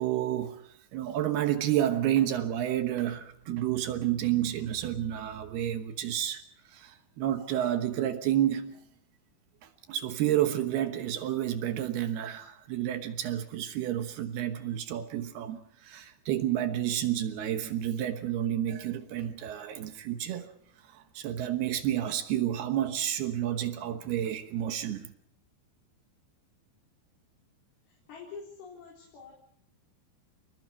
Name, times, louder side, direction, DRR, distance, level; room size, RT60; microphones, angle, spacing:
voice 1, 0.0-8.8 9.6-20.5 20.8-25.1, right 11 dB, 70° right, 2.8 m, -30 dB
voice 2, 27.9-29.3, left 5 dB, 55° left, 5.7 m, -46 dB
29.0 x 20.5 x 4.6 m
omnidirectional pair, 5.4 m